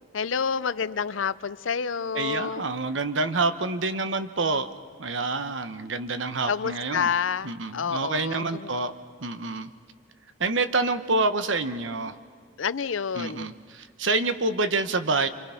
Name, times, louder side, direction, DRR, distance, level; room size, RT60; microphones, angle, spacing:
voice 1, 0.1-2.7 6.5-8.7 12.6-13.5, left 6 dB, 85° left, 16 dB, 0.6 m, -29 dB
voice 2, 2.1-4.7 5.0-7.1 7.4-8.9 9.2-9.7 10.4-12.1 13.2-15.3, right 3 dB, 75° right, 11 dB, 1.1 m, -27 dB
28.5 x 24.5 x 5.9 m, 2.1 s
head